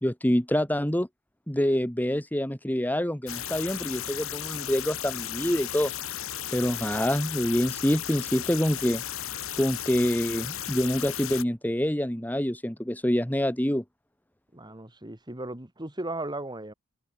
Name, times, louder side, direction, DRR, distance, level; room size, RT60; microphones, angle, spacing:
voice 1, 0.0-1.1 1.5-5.9 6.5-9.0 9.6-13.8, equal, 10° left, 1.5 m, -26 dB
sound 1, 3.3-11.4, left 10 dB, 65° left, 4.0 m, -35 dB
voice 2, 6.5-7.0 14.5-16.7, right 2 dB, 20° right, 2.6 m, -37 dB
head